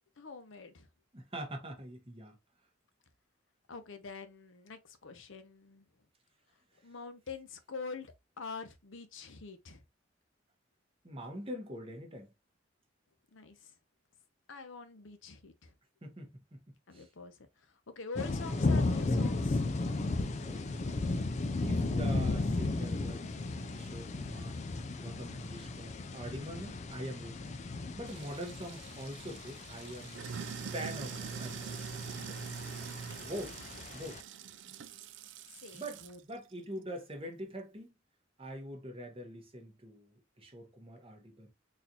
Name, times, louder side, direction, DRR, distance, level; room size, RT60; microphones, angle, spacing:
voice 1, 0.2-0.9 3.7-5.9 6.8-9.8 13.3-13.7 14.5-15.7 16.9-17.7 18.0-19.6 35.6-36.2, left 4 dB, 85° left, 0.7 m, -45 dB
voice 2, 1.1-2.4 11.0-12.3 16.0-16.6 16.9-17.1 20.4-20.7 21.6-24.7 25.0-27.5 28.0-30.2 30.7-32.5 33.2-33.5 33.9-34.2 34.6-34.7 35.7-37.9 38.4-41.5, equal, 30° right, 1.0 m, -44 dB
sound 1, 18.2-34.2, left 2 dB, 35° left, 0.4 m, -35 dB
Sink (filling or washing), 28.1-36.2, right 7 dB, 65° right, 0.4 m, -44 dB
4.0 x 2.6 x 2.8 m
head